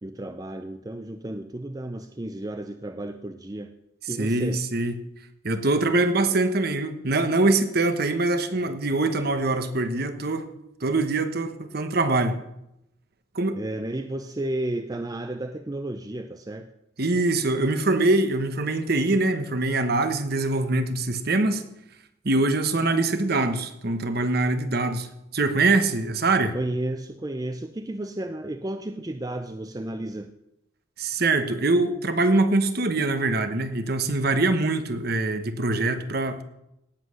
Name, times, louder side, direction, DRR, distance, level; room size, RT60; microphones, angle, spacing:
voice 1, 0.0-3.7 4.1-4.6 13.5-16.7 26.5-30.3, right 1 dB, 20° right, 8 dB, 0.5 m, -32 dB
voice 2, 4.2-4.9 5.4-10.4 10.8-12.4 13.3-13.6 17.0-21.6 22.2-26.5 31.0-36.4, right 2 dB, 50° right, 9 dB, 1.1 m, -23 dB
18.0 x 7.7 x 6.4 m, 0.86 s
head